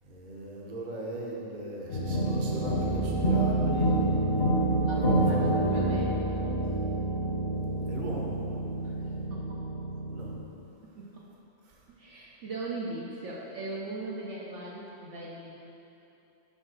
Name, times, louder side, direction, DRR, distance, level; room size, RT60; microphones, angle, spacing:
voice 1, 0.0-4.0 5.0-6.0 7.9-8.5 10.1-10.4 11.7-11.8, right 1 dB, 40° right, -3 dB, 0.9 m, -38 dB
sound 1, 1.9-10.4, right 1 dB, 50° left, 1.2 m, -28 dB
voice 2, 4.8-6.4 9.3-9.6 10.8-11.2 11.9-15.5, right 2 dB, 60° right, -4 dB, 1.0 m, -39 dB
5.5 x 4.7 x 6.1 m, 3.0 s
omnidirectional pair, 1.5 m